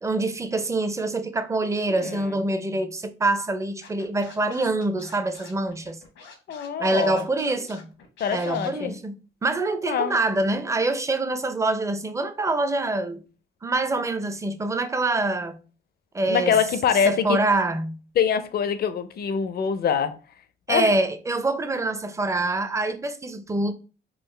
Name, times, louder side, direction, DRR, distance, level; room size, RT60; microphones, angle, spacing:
voice 1, 0.0-6.0 6.8-7.9 8.3-13.2 13.6-15.6 16.1-16.5 17.1-18.0 20.7-23.7, right 2 dB, 15° right, 0.5 m, -25 dB
voice 2, 2.0-2.3 6.5-7.3 8.2-8.9 9.9-10.2 16.3-17.4 18.2-20.2 20.7-20.9, left 7 dB, 50° left, 0.5 m, -24 dB
Scratching (performance technique), 3.8-8.7, left 5 dB, 85° left, 1.0 m, -47 dB
3.8 x 2.4 x 3.2 m
cardioid pair, 90°, 20 cm